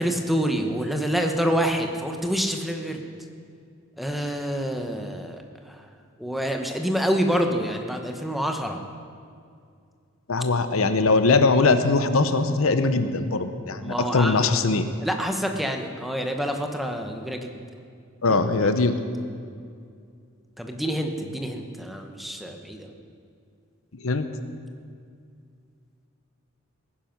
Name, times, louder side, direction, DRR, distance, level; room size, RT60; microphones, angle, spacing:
voice 1, 0.0-3.0 4.0-5.8 6.2-8.8 13.8-14.5 15.0-17.5 18.3-18.7 20.6-22.9, equal, ahead, 4 dB, 1.0 m, -27 dB
voice 2, 10.3-14.9 18.2-19.0 24.0-24.3, left 3 dB, 75° left, 10 dB, 0.9 m, -21 dB
18.0 x 10.5 x 6.0 m, 2.3 s
head